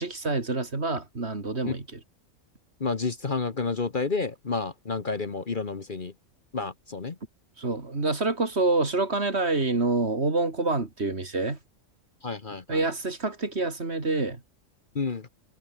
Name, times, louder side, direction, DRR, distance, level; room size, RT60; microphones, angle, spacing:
voice 1, 0.0-1.8 7.6-11.6 12.7-14.4, right 3 dB, 55° right, 3.3 m, -27 dB
voice 2, 2.8-6.1 6.5-7.2 12.2-12.9 14.9-15.3, left 4 dB, 40° left, 1.3 m, -30 dB
omnidirectional pair, 1.4 m